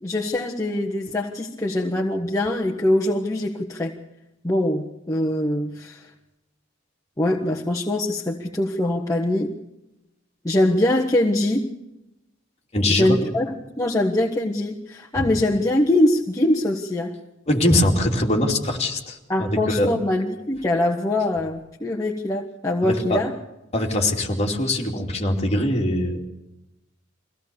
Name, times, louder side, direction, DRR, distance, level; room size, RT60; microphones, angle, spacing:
voice 1, 0.0-3.9 4.4-6.0 7.2-9.5 10.4-11.7 12.9-17.1 19.3-23.3, left 1 dB, 15° left, -2 dB, 1.4 m, -23 dB
voice 2, 12.7-13.2 15.2-15.3 17.5-19.9 22.8-23.2 23.7-26.3, left 1 dB, 35° left, 1 dB, 2.7 m, -22 dB
23.5 x 17.0 x 7.0 m, 0.91 s
head